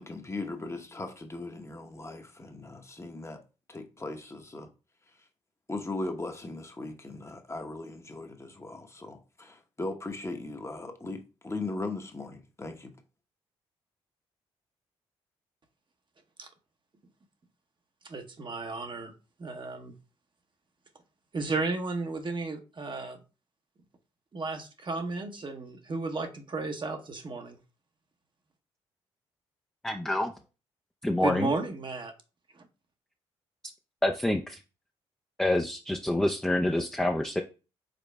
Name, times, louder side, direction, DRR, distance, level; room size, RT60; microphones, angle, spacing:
voice 1, 0.0-3.4 3.7-4.7 5.7-12.9, left 2 dB, 20° left, 0.9 m, -38 dB
voice 2, 18.0-19.1 19.4-19.9 21.3-23.2 24.3-27.6 31.2-32.1 32.5-32.7, right 3 dB, 40° right, 0.8 m, -33 dB
voice 3, 29.8-30.3 31.0-31.5 34.0-34.6 35.4-37.4, left 1 dB, 5° left, 0.5 m, -27 dB
5.1 x 3.8 x 2.2 m
supercardioid pair, 50°, 12 cm